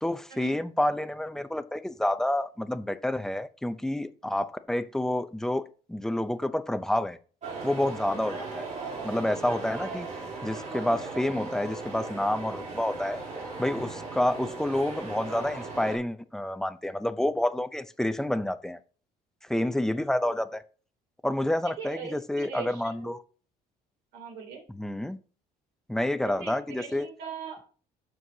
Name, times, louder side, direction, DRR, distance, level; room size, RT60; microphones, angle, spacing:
voice 1, 0.0-5.6 5.9-7.2 7.6-8.7 9.0-10.1 10.4-13.2 13.6-18.8 19.4-20.6 21.2-23.2 24.7-25.2 25.9-27.1, left 1 dB, 5° left, 0.5 m, -29 dB
sound 1, 7.4-16.0, right 3 dB, 45° right, 3.3 m, -37 dB
voice 2, 21.8-23.2 24.1-24.7 26.2-27.6, right 6 dB, 80° right, 3.0 m, -41 dB
12.5 x 4.7 x 2.7 m
cardioid pair, 110°, 17 cm